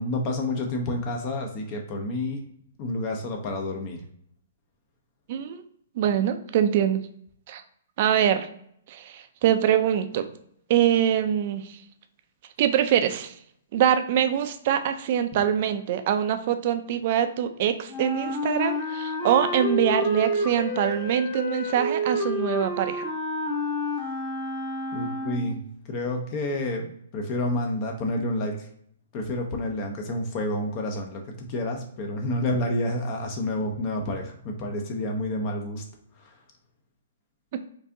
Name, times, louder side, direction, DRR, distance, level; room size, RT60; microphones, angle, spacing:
voice 1, 0.0-2.4 2.8-4.0 24.9-25.6 25.9-28.7 29.1-35.8 36.2-36.3, left 1 dB, 35° left, 3 dB, 0.6 m, -29 dB
voice 2, 5.3-5.6 6.0-7.0 7.5-7.6 8.0-8.5 8.9-10.3 10.7-11.8 12.6-13.3 13.7-23.0, right 9 dB, 45° right, 9 dB, 0.4 m, -24 dB
Wind instrument woodwind instrument, 17.9-25.6, left 1 dB, 20° left, 0.9 m, -29 dB
4.6 x 2.6 x 2.6 m, 0.68 s
hypercardioid pair, 150°, 0 cm